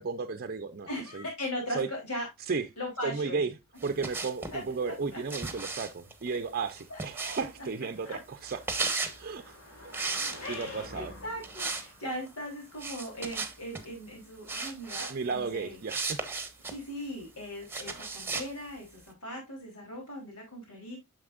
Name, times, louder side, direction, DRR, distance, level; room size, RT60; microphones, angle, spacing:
voice 1, 0.0-1.3 1.7-1.9 2.5-2.7 3.0-3.5 3.8-8.6 9.2-9.6 9.8-9.9 10.2-11.1 15.1-16.2 17.9-18.0, right 4 dB, 45° right, 0.6 m, -34 dB
voice 2, 0.9-2.3 2.8-3.5 4.5-5.2 6.9-7.0 8.0-8.2 10.4-15.8 16.6-21.0, equal, 80° left, 3.6 m, -39 dB
Car passing by, 2.3-18.8, left 1 dB, 60° left, 5.2 m, -54 dB
sound 1, 3.8-4.6 5.3-7.6 8.4-9.2 9.9-10.8 11.4-11.9 12.1-12.3 12.8-13.8 14.5-15.1 15.9-16.8 17.7-18.5, right 4 dB, 10° right, 1.2 m, -35 dB
9.7 x 6.5 x 2.5 m
head